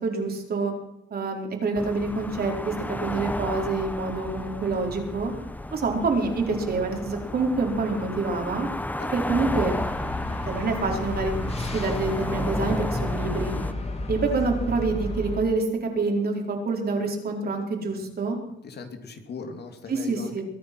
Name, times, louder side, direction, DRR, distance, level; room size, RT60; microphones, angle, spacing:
voice 1, 0.0-0.7 1.1-2.7 3.0-5.3 5.7-8.7 9.1-9.7 10.5-13.5 14.1-18.4 19.9-20.4, right 3 dB, 50° right, 2 dB, 4.3 m, -27 dB
sound 1, 1.8-13.7, left 1 dB, 10° left, 1.2 m, -33 dB
sound 2, 9.3-15.4, left 2 dB, 30° left, 2.9 m, -32 dB
voice 2, 18.6-20.4, left 4 dB, 55° left, 6 dB, 2.6 m, -38 dB
22.5 x 9.6 x 6.2 m, 0.86 s
cardioid pair, 90°, 20 cm